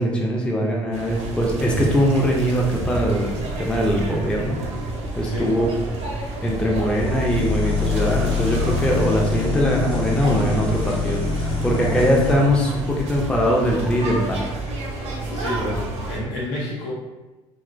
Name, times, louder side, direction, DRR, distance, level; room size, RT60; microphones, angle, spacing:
voice 1, 0.0-4.6 5.2-5.7 6.4-14.4, equal, 5° left, -2 dB, 0.5 m, -21 dB
sound 1, 0.9-16.2, right 2 dB, 45° right, 0.6 m, -29 dB
sound 2, 6.7-12.3, left 6 dB, 35° left, 0.8 m, -26 dB
voice 2, 15.2-16.9, left 1 dB, 70° left, -4 dB, 0.7 m, -29 dB
2.9 x 2.0 x 2.5 m, 1.1 s
figure-of-eight pair, 55°, 15 cm